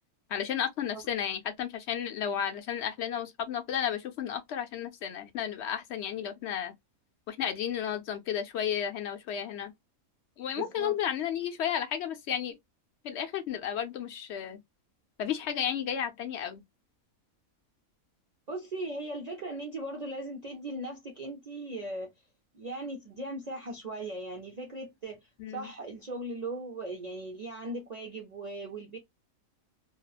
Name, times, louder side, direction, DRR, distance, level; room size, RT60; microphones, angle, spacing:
voice 1, 0.3-6.7 7.3-9.7 10.4-12.5 13.0-14.6 15.2-16.6 25.4-25.7, left 9 dB, 60° left, 0.8 m, -33 dB
voice 2, 10.6-11.0 18.5-22.1 22.5-29.0, right 2 dB, 60° right, 0.4 m, -38 dB
2.8 x 2.0 x 2.3 m
omnidirectional pair, 1.5 m